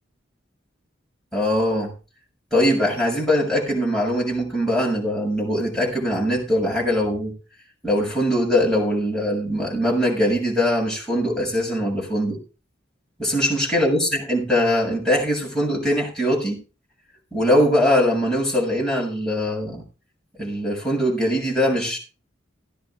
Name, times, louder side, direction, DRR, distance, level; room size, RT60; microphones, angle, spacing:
voice 1, 1.3-1.9 2.5-7.3 7.8-12.4 13.2-16.6 17.3-19.8 20.4-22.0, equal, 5° left, 7.4 m, -21 dB
18.0 x 10.5 x 3.7 m
head